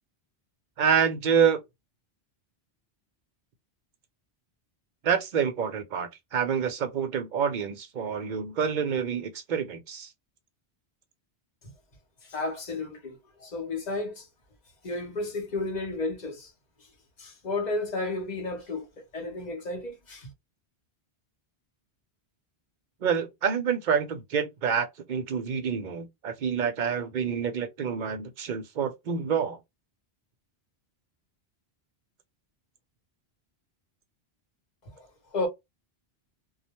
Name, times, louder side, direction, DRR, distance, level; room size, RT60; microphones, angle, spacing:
voice 1, 0.8-1.6 5.0-10.1 23.0-29.6, right 7 dB, 55° right, 0.6 m, -27 dB
voice 2, 12.3-14.3 14.8-16.5 17.2-20.3 34.9-35.1 35.3-35.5, left 2 dB, 45° left, 0.8 m, -32 dB
2.2 x 2.1 x 2.8 m
omnidirectional pair, 1.1 m